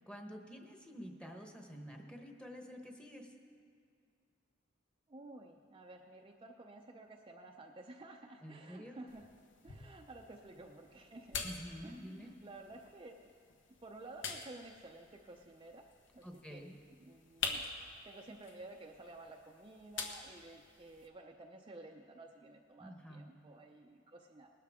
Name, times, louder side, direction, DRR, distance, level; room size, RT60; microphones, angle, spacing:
voice 1, 0.1-3.3 8.4-9.0 11.4-12.3 16.2-16.8 22.8-23.2, equal, 5° left, 2 dB, 1.2 m, -49 dB
voice 2, 5.1-9.3 9.6-11.6 11.8-13.3 13.8-15.9 16.1-16.6 16.9-24.5, right 2 dB, 25° right, 1 dB, 0.6 m, -53 dB
sound 1, 9.1-21.1, left 5 dB, 70° left, 1.1 m, -47 dB
19.5 x 12.5 x 3.6 m, 2.3 s
head